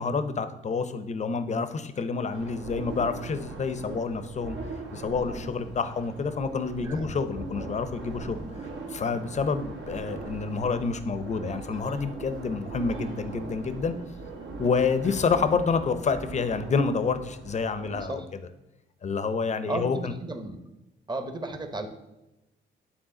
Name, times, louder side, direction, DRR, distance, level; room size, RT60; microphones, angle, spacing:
voice 1, 0.0-4.6 4.9-8.4 8.9-13.9 14.6-18.2 19.0-20.1, left 5 dB, 35° left, 11 dB, 0.6 m, -28 dB
sound 1, 2.3-18.0, right 3 dB, 70° right, 1.5 m, -40 dB
voice 2, 6.8-7.2 18.0-18.3 19.7-20.6 21.1-21.9, right 2 dB, 20° right, 7 dB, 0.9 m, -34 dB
8.9 x 3.7 x 3.8 m, 0.97 s
cardioid pair, 90°, 20 cm